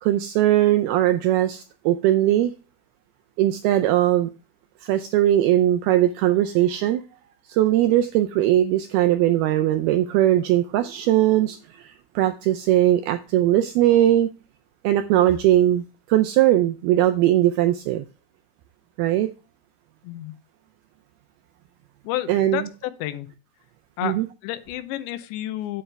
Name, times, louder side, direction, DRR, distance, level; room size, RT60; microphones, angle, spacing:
voice 1, 0.0-2.5 3.4-4.3 4.8-7.0 7.5-14.3 14.8-18.0 19.0-19.3 22.3-22.7 24.0-24.3, right 13 dB, 85° right, 2.2 m, -20 dB
voice 2, 22.0-23.3 24.0-24.2 24.4-25.8, left 13 dB, 85° left, 3.1 m, -30 dB
8.9 x 8.6 x 3.4 m
omnidirectional pair, 5.0 m